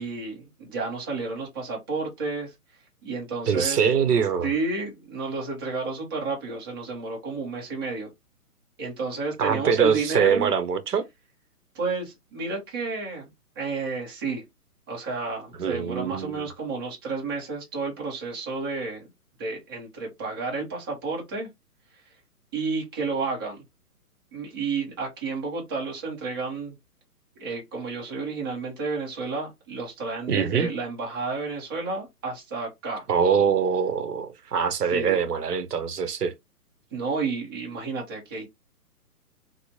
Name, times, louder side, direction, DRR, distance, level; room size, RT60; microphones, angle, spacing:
voice 1, 0.0-2.5 3.0-3.8 4.4-8.1 8.8-10.5 11.7-13.3 13.6-14.4 14.9-19.1 19.4-21.5 22.5-23.6 24.3-26.7 27.4-33.1 34.9-35.2 36.9-38.5, right 4 dB, 15° right, 0.6 m, -31 dB
voice 2, 3.5-4.5 9.4-11.0 15.6-16.4 30.3-30.7 33.1-36.3, right 7 dB, 85° right, 0.8 m, -23 dB
3.0 x 2.0 x 2.7 m
figure-of-eight pair, 135°, 46 cm